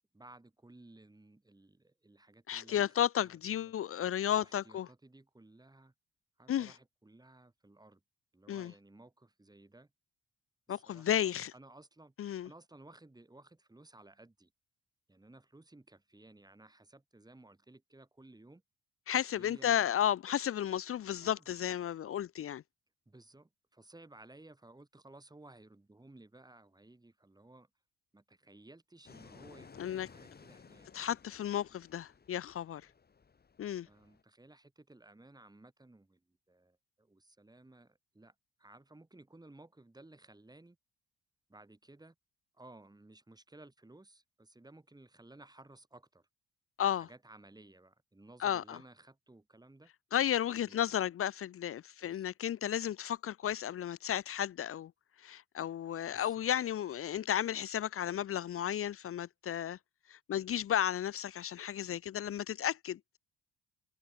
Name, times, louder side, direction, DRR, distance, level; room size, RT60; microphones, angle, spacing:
voice 1, 0.0-3.7 4.3-5.9 6.4-8.0 8.3-9.9 10.7-11.2 11.5-12.1 12.4-14.5 15.1-18.6 19.3-20.0 21.2-21.4 23.1-27.7 28.1-30.9 33.9-40.8 41.5-42.2 42.5-46.3 46.9-49.9 50.5-50.9 52.0-52.3 56.1-56.7, right 2 dB, 15° right, 7.3 m, -57 dB
voice 2, 2.5-4.9 6.5-6.7 8.5-8.7 10.7-11.5 12.2-12.5 19.1-22.6 29.8-30.1 30.9-32.8 33.6-33.9 46.8-47.1 48.4-48.8 50.1-54.9 55.2-59.8 60.1-63.0, left 10 dB, 45° left, 0.6 m, -33 dB
Fixed-wing aircraft airplane, 29.0-34.2, left 5 dB, 30° left, 1.9 m, -57 dB
cardioid pair, 90°, 30 cm